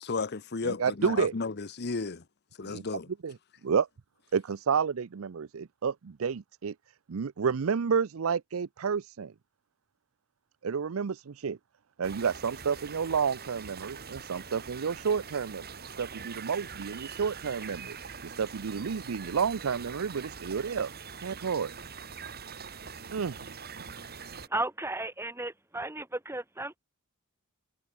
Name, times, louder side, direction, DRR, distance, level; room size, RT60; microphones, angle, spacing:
voice 1, 0.1-2.2 2.6-3.1, left 4 dB, 50° left, 0.9 m, -33 dB
voice 2, 0.6-1.3 2.6-2.8 3.2-3.3 3.6-3.9 4.3-6.7 7.1-9.3 10.6-11.6 12.0-15.7 16.0-20.9 21.2-21.7 23.1-23.4, right 6 dB, 70° right, 0.5 m, -30 dB
sound 1, 12.0-24.5, right 6 dB, 50° right, 3.1 m, -43 dB
voice 3, 24.5-26.8, right 2 dB, 10° right, 3.5 m, -34 dB
head